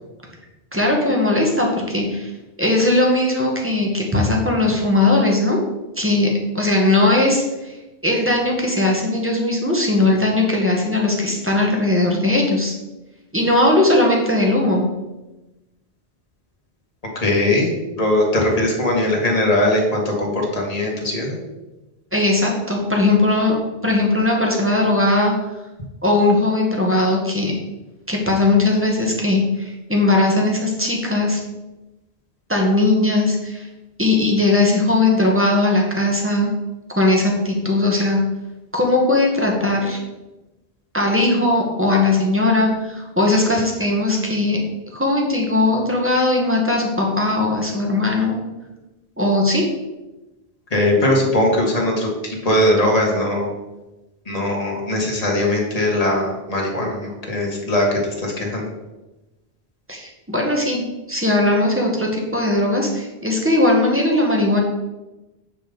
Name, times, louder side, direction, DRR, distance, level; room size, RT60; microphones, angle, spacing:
voice 1, 0.7-2.3 2.6-5.6 6.0-6.3 6.5-7.8 8.0-12.7 13.3-14.8 22.1-23.6 23.8-25.3 26.0-27.5 28.1-31.4 32.5-33.7 34.0-36.5 37.0-38.2 38.7-40.0 40.9-44.6 44.9-48.4 49.2-49.6 59.9-64.6, left 2 dB, 10° right, -1 dB, 1.9 m, -18 dB
voice 2, 17.2-17.7 18.0-21.4 50.7-53.5 54.3-58.7, left 1 dB, 35° left, -2 dB, 2.1 m, -20 dB
8.8 x 5.8 x 5.3 m, 1.0 s
omnidirectional pair, 1.1 m